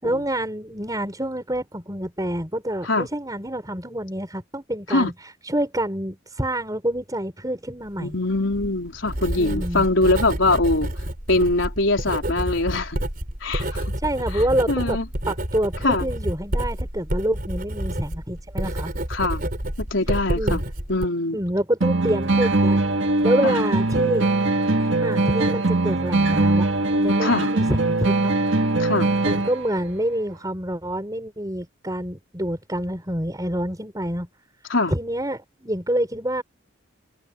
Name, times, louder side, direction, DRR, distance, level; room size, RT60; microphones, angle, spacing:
voice 1, 0.0-8.2 9.4-9.8 13.6-15.0 15.3-18.9 20.4-20.6 21.3-22.8 23.2-24.4 24.8-28.6 29.2-34.3 34.9-36.4, right 1 dB, 20° right, 5.6 m, -27 dB
voice 2, 8.0-10.9 11.3-13.0 13.4-13.9 14.3-15.1 15.8-16.1 19.1-19.5 19.9-20.6 20.9-21.4 23.4-23.6 27.2-27.5 28.8-29.1 34.7-34.9, left 2 dB, 70° left, 4.0 m, -23 dB
Writing, 8.3-21.1, right 1 dB, 45° right, 4.1 m, -29 dB
sound 1, 21.8-29.8, right 2 dB, 65° right, 1.8 m, -21 dB
head